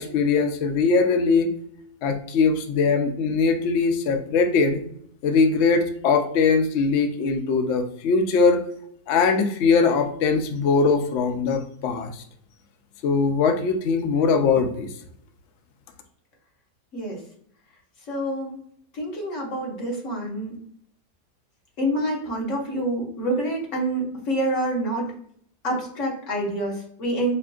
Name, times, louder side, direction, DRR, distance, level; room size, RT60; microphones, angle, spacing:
voice 1, 0.0-1.5 2.0-4.8 5.2-8.6 9.1-12.2 13.0-14.9, left 4 dB, 80° left, 6 dB, 0.6 m, -21 dB
voice 2, 18.1-18.6 18.9-20.5 21.8-25.1 25.6-27.3, right 1 dB, 55° left, -1 dB, 1.4 m, -27 dB
5.1 x 2.5 x 2.3 m, 0.65 s
omnidirectional pair, 1.8 m